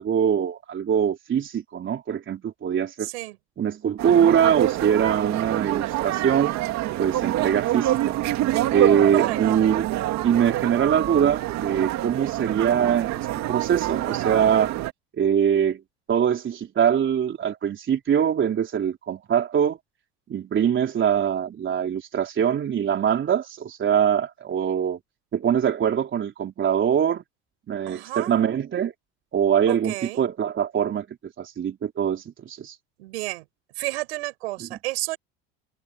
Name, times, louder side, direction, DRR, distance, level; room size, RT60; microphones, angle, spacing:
voice 1, 0.0-3.1 3.6-6.6 7.0-8.2 8.7-9.9 10.2-14.7 15.2-15.8 16.1-19.8 20.3-25.0 25.3-27.2 27.7-28.9 29.3-31.1 31.4-32.8 34.6-34.7, right 8 dB, 35° right, 3.8 m, -23 dB
voice 2, 3.0-3.4 9.1-9.6 27.9-28.3 29.7-30.2 33.0-33.4 33.7-35.2, right 20 dB, 80° right, 7.0 m, -31 dB
sound 1, 4.0-14.9, right 15 dB, 55° right, 2.3 m, -26 dB
supercardioid pair, 90°, 32 cm